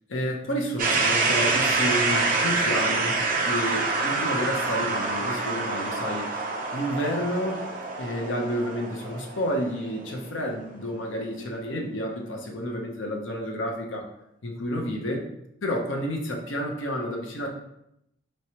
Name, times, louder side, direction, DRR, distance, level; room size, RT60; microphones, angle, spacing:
voice 1, 0.1-6.4 6.7-7.7 8.0-14.1 14.4-15.2 15.6-17.5, equal, 85° left, 1 dB, 0.7 m, -30 dB
sound 1, 0.8-10.6, right 3 dB, 45° right, 0.6 m, -26 dB
4.4 x 3.1 x 2.8 m, 0.81 s
head